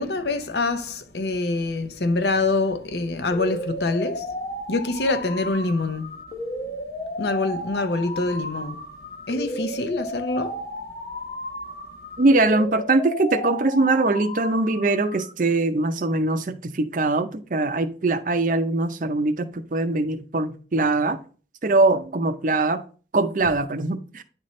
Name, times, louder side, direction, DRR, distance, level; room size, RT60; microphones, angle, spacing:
voice 1, 0.0-4.4 4.7-6.2 7.2-8.9 9.3-10.7, left 2 dB, 70° left, 0.7 m, -25 dB
sound 1, 3.3-15.3, left 1 dB, 45° left, 1.1 m, -34 dB
voice 2, 12.2-21.2 21.6-22.8 23.1-24.2, right 2 dB, 45° right, 0.6 m, -22 dB
9.7 x 4.3 x 3.1 m
head